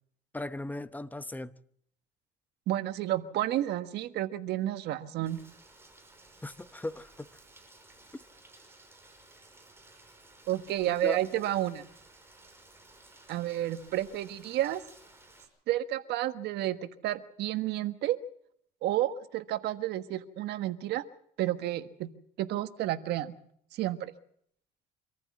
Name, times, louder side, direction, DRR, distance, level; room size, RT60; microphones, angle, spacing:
voice 1, 0.3-1.5 6.4-7.3 10.9-11.2, left 2 dB, 10° left, 0.9 m, -37 dB
voice 2, 2.7-5.4 10.5-11.9 13.3-14.8 15.7-18.2 18.8-21.0 21.4-22.1 22.4-23.4 23.7-24.1, right 13 dB, 80° right, 1.4 m, -31 dB
Rain, 5.3-15.4, right 2 dB, 15° right, 5.7 m, -56 dB
25.5 x 14.5 x 7.4 m
cardioid pair, 110°, 17 cm